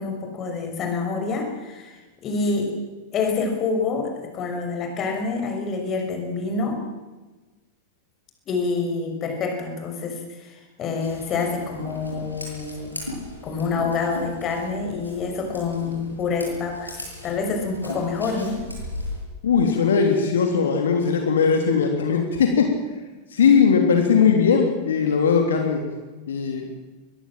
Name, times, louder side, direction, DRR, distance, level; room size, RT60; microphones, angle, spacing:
voice 1, 0.0-1.9 2.2-2.7 3.1-6.8 8.5-13.0 13.4-18.6, left 4 dB, 30° left, 4 dB, 6.3 m, -27 dB
Scissors, 11.0-19.2, left 1 dB, 90° left, 7.7 m, -37 dB
voice 2, 19.4-22.7 23.3-25.8 26.3-26.7, left 6 dB, 65° left, 3 dB, 3.1 m, -19 dB
23.5 x 21.0 x 7.6 m, 1.2 s
figure-of-eight pair, 90°, 0 cm